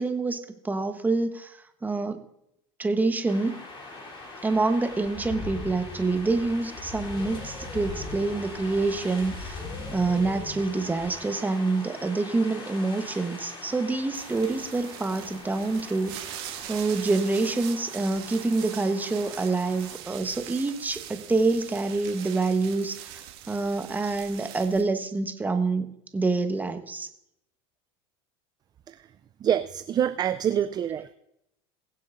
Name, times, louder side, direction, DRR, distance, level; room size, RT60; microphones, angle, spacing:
voice 1, 0.0-2.2 2.8-3.6 4.4-9.6 9.9-16.3 16.7-23.2 23.5-25.9 26.1-27.1, right 3 dB, 15° right, 7 dB, 1.2 m, -27 dB
sound 1, 3.3-20.0, left 3 dB, 45° left, 3.4 m, -41 dB
sound 2, 14.1-24.8, right 12 dB, 70° right, 2.0 m, -42 dB
voice 2, 29.4-31.1, right 9 dB, 30° right, 11 dB, 0.4 m, -26 dB
22.5 x 7.6 x 2.6 m, 0.79 s
supercardioid pair, 105°, 14 cm